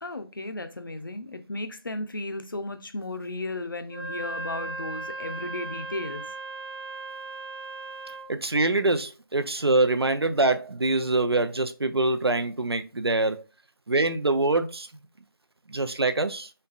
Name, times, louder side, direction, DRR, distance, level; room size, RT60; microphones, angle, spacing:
voice 1, 0.0-6.2, left 2 dB, 60° left, 0.6 m, -34 dB
Wind instrument woodwind instrument, 3.9-8.4, right 3 dB, 65° right, 1.0 m, -37 dB
voice 2, 8.3-13.4 13.9-14.9 15.7-16.5, right 2 dB, 85° right, 0.6 m, -24 dB
4.0 x 3.3 x 2.4 m
figure-of-eight pair, 170°, 13 cm